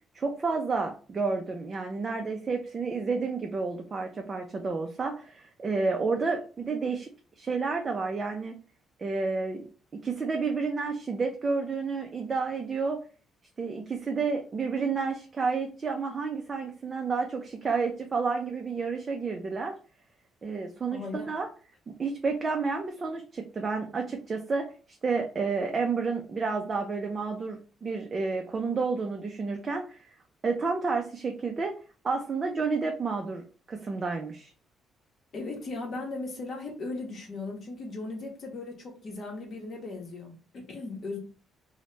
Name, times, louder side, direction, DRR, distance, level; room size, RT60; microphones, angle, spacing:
voice 1, 0.1-7.1 7.4-8.6 9.0-9.6 10.0-13.0 13.6-19.7 20.4-21.5 21.9-24.7 25.0-30.1 30.4-31.7 32.0-34.5, right 4 dB, 25° right, 2 dB, 0.4 m, -30 dB
voice 2, 20.9-21.3 35.3-41.2, left 3 dB, 45° left, 0 dB, 0.8 m, -37 dB
2.8 x 2.0 x 3.1 m, 0.38 s
cardioid pair, 155°, 0 cm